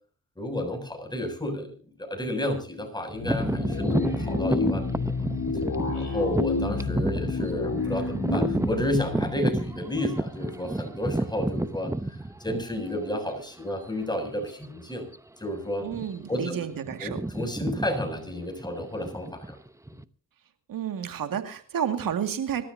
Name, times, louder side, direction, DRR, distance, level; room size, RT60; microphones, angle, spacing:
voice 1, 0.4-1.7 2.0-5.1 5.9-11.9 12.4-15.1 15.4-15.9 16.3-16.6 17.0-19.4, left 1 dB, 10° left, 3 dB, 7.3 m, -31 dB
sound 1, 3.1-10.3, left 4 dB, 55° left, 6.2 m, -30 dB
sound 2, 3.2-13.0 13.7-13.8 14.4-14.6 14.9-15.2 15.8-16.4 16.6-20.0, right 1 dB, 10° right, 0.9 m, -30 dB
voice 2, 15.8-17.2 20.7-22.6, right 8 dB, 80° right, 7 dB, 2.3 m, -30 dB
26.0 x 13.5 x 2.8 m, 0.39 s
cardioid pair, 55°, 33 cm